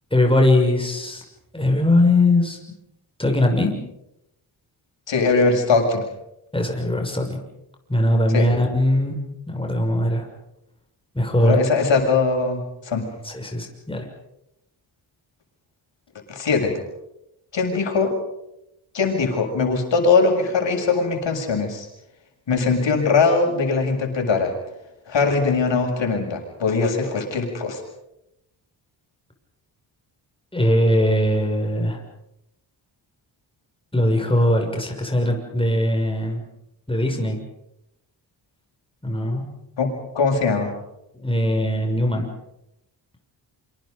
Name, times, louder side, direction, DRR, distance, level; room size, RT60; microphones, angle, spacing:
voice 1, 0.1-1.2 1.5-2.6 3.2-3.7 6.5-7.4 7.9-9.2 9.5-10.3 11.1-11.6 13.2-14.0 30.5-32.0 33.9-36.4 36.9-37.4 39.0-39.5 41.2-42.3, left 1 dB, 10° left, 2 dB, 6.3 m, -20 dB
voice 2, 5.1-6.1 8.3-8.5 11.4-13.0 16.3-16.8 17.5-18.1 18.9-21.9 22.5-24.5 25.1-27.8 39.8-40.7, left 4 dB, 65° left, 3 dB, 7.2 m, -21 dB
28.0 x 26.0 x 5.4 m, 0.85 s
cardioid pair, 65°, 47 cm